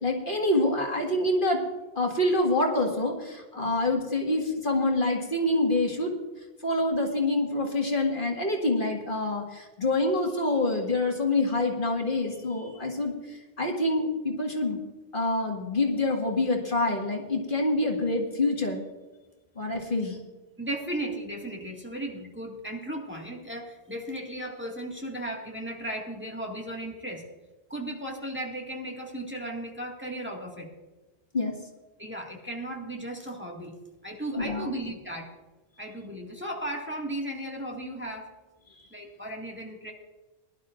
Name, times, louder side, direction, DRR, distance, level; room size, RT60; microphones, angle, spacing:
voice 1, 0.0-1.6 2.0-6.2 6.6-13.1 13.6-14.8 15.1-18.8 19.6-20.2 31.3-31.5 34.4-34.7, left 2 dB, 55° left, 1 dB, 2.0 m, -26 dB
voice 2, 20.6-27.3 27.7-30.7 32.0-33.8 34.0-35.3 35.8-38.3 38.9-39.9, right 1 dB, 10° right, -1 dB, 1.9 m, -36 dB
21.5 x 12.0 x 2.5 m, 1.2 s
omnidirectional pair, 1.0 m